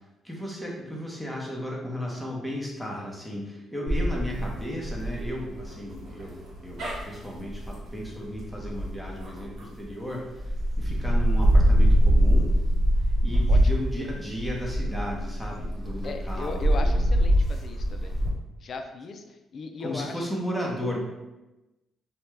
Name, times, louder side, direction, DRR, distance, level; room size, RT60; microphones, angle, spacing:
voice 1, 0.2-12.5 13.2-17.0 19.8-21.0, equal, ahead, -3 dB, 0.8 m, -34 dB
sound 1, 3.9-9.8 10.4-18.3, equal, 65° right, 1.0 m, -24 dB
voice 2, 16.0-18.2 18.6-20.4, left 4 dB, 55° left, 5 dB, 0.3 m, -37 dB
2.8 x 2.2 x 3.2 m, 1.0 s
cardioid pair, 90°, 0 cm